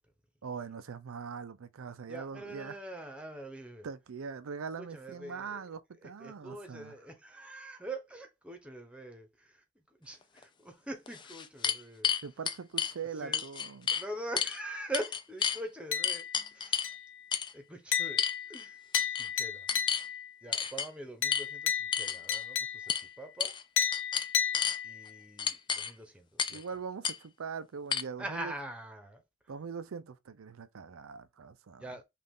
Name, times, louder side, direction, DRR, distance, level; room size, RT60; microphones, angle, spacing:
voice 1, 0.4-2.8 3.8-6.9 12.2-13.9 26.5-28.5 29.5-31.9, right 6 dB, 85° right, 0.5 m, -42 dB
voice 2, 2.1-3.9 4.8-5.6 6.0-9.6 10.0-12.1 13.2-13.4 13.9-16.2 16.5-16.9 17.5-18.8 19.1-19.7 20.4-23.5 24.8-26.6 28.2-29.2 31.8-32.0, right 1 dB, 5° right, 0.9 m, -43 dB
sound 1, 10.4-10.5 11.1-12.9 13.3-14.0 14.4-14.6 14.9-15.6 16.0-16.9 17.3-17.5 18.2-18.6 18.9-19.3 19.7-20.1 20.5-20.9 21.3-21.4 21.9-22.4 22.9-23.0 23.4-23.6 23.9-24.8 25.4-25.9 26.4-26.6 27.0-27.2 27.9-28.0, left 7 dB, 20° left, 0.4 m, -31 dB
sound 2, 15.9-16.5 16.8-17.3 17.9-20.3 21.2-23.1 23.8-25.2, left 9 dB, 65° left, 0.6 m, -33 dB
5.7 x 2.5 x 3.6 m
head